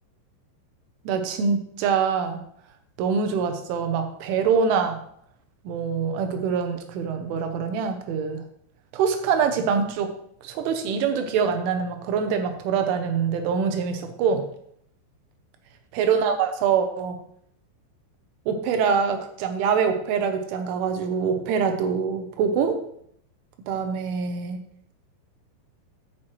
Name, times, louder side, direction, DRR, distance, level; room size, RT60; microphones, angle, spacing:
voice 1, 1.1-2.4 3.0-5.0 5.7-8.4 8.9-10.1 10.4-14.4 16.0-17.2 18.5-22.8 23.7-24.6, right 6 dB, 85° right, 6 dB, 3.5 m, -24 dB
13.5 x 6.3 x 3.2 m, 0.68 s
omnidirectional pair, 5.6 m